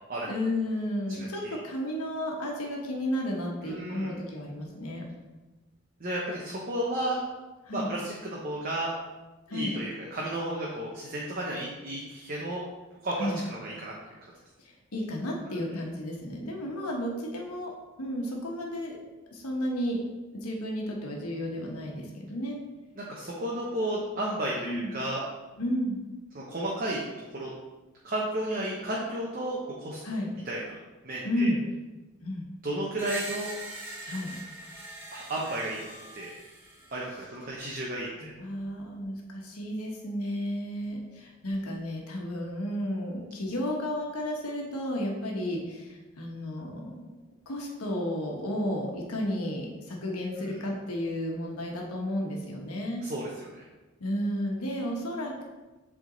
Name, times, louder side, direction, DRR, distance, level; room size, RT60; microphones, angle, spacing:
voice 1, 0.2-5.1 7.6-7.9 9.5-9.7 13.2-13.4 14.6-19.0 19.3-20.0 20.3-22.6 24.6-25.0 25.6-26.0 30.0-30.3 31.2-31.6 32.2-32.5 34.0-34.4 38.2-47.1 47.5-53.0 54.0-55.4, equal, 90° left, 0 dB, 1.2 m, -32 dB
voice 2, 1.2-1.6 3.6-4.1 6.0-7.2 7.7-8.9 9.5-12.6 13.0-13.9 23.0-25.2 26.3-27.5 28.0-30.0 30.5-30.6 31.0-31.5 32.6-33.5 35.1-35.8 36.2-36.3 36.9-38.3 50.4-50.5 53.0-53.3 53.5-53.6, right 1 dB, 40° right, -4 dB, 0.8 m, -33 dB
Screech, 33.0-37.0, right 1 dB, 10° right, 0.8 m, -42 dB
7.9 x 3.6 x 3.9 m, 1.2 s
head